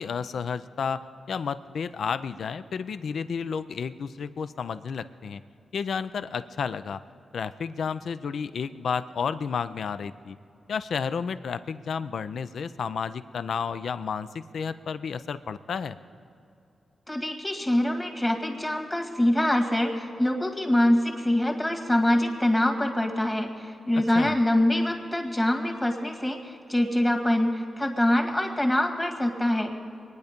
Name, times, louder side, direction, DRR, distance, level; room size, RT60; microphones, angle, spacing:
voice 1, 0.0-5.4 5.7-7.0 7.3-10.4 10.7-16.0 24.1-24.4, left 6 dB, 75° left, 13 dB, 0.4 m, -31 dB
voice 2, 17.1-29.7, left 1 dB, 15° left, 4 dB, 1.9 m, -24 dB
22.5 x 9.5 x 5.2 m, 2.6 s
cardioid pair, 70°, 0 cm